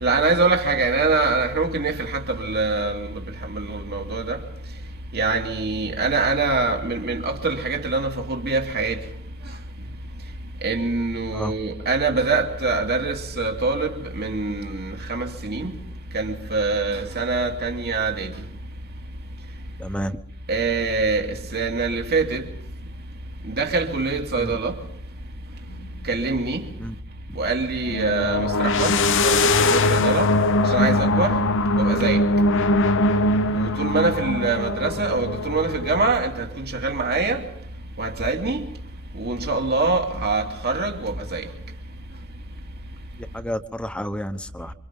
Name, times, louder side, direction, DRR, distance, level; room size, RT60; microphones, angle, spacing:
voice 1, 0.0-4.4 5.1-9.0 10.6-15.8 16.1-18.4 20.5-22.5 23.4-24.8 26.0-26.7 27.3-30.3 30.6-31.4 31.8-32.2 33.5-37.4 38.0-38.7 39.1-41.5, right 3 dB, 50° right, 2.6 m, -24 dB
voice 2, 19.8-20.2 24.4-24.5 26.8-26.9 28.2-28.3 43.3-44.7, equal, 5° left, 1.1 m, -30 dB
sound 1, 25.7-25.8 27.8-36.1, left 2 dB, 65° left, 0.9 m, -21 dB
27.5 x 25.0 x 3.8 m
head